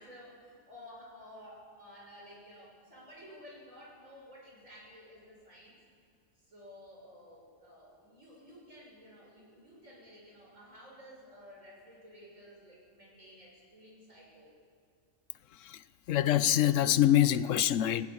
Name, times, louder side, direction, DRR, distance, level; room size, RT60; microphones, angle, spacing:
voice 1, 0.0-5.8 6.4-14.5, equal, 85° right, 6.8 m, -53 dB
voice 2, 16.1-18.1, left 12 dB, 80° left, 1.0 m, -24 dB
18.0 x 17.0 x 9.7 m
omnidirectional pair, 1.3 m